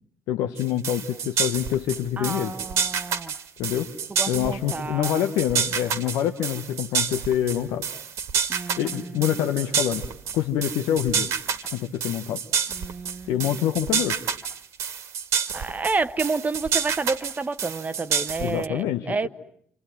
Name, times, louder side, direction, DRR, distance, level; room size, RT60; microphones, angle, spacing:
voice 1, 0.3-2.5 3.6-3.9 4.3-7.9 8.8-10.0 10.3-11.3 11.6-12.4 13.3-14.2 18.4-19.3, left 11 dB, 65° left, 1.2 m, -26 dB
sound 1, 0.6-18.7, right 7 dB, 60° right, 1.7 m, -28 dB
voice 2, 2.2-3.3 4.2-5.3 8.5-9.4 12.7-13.6 15.5-19.3, right 4 dB, 30° right, 1.1 m, -30 dB
28.0 x 27.5 x 7.6 m
figure-of-eight pair, 45°, 6 cm